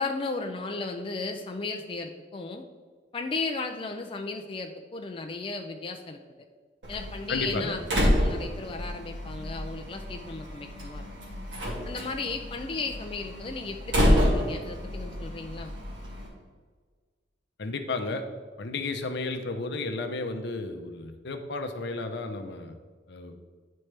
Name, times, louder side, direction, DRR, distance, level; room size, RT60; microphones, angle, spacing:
voice 1, 0.0-2.6 3.1-6.2 6.9-11.1 11.9-15.7, left 3 dB, 30° left, 4 dB, 0.4 m, -35 dB
Slam, 6.8-16.3, equal, 80° right, 2.0 m, -29 dB
voice 2, 7.3-7.8 17.6-18.2 18.6-22.8 23.1-23.4, left 3 dB, 65° left, 6 dB, 0.7 m, -33 dB
10.0 x 4.3 x 3.3 m, 1.5 s
head